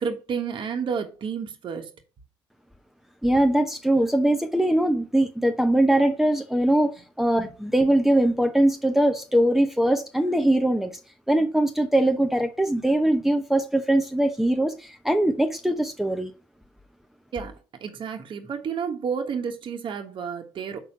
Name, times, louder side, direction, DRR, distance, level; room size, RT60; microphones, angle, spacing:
voice 1, 0.0-1.9 17.3-20.8, right 6 dB, 55° right, 1.4 m, -31 dB
voice 2, 3.2-11.0 11.3-16.3, right 1 dB, 5° right, 0.9 m, -22 dB
6.2 x 4.4 x 5.7 m
supercardioid pair, 75°, 10 cm